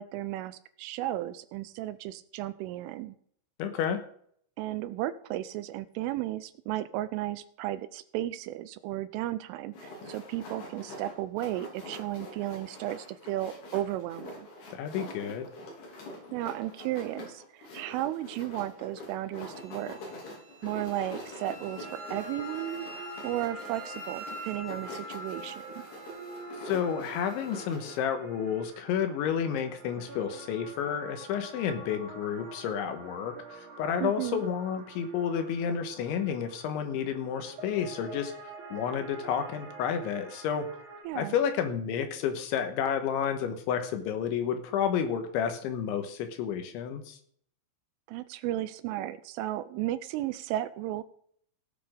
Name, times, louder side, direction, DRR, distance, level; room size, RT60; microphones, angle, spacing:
voice 1, 0.0-3.2 4.6-14.5 16.3-20.0 20.6-25.9 34.0-34.4 41.0-41.3 48.1-51.0, right 14 dB, 85° right, 15 dB, 3.0 m, -34 dB
voice 2, 3.6-4.0 14.7-15.5 26.6-38.3 38.7-40.7 41.2-47.2, left 8 dB, 75° left, 7 dB, 3.3 m, -31 dB
sound 1, 9.7-28.0, left 1 dB, 55° left, 5.4 m, -45 dB
Wind instrument woodwind instrument, 19.5-27.7, left 1 dB, 20° right, 2.1 m, -45 dB
sound 2, 21.8-41.0, right 3 dB, 45° right, 3.5 m, -47 dB
16.5 x 8.6 x 5.1 m, 0.63 s
omnidirectional pair, 5.9 m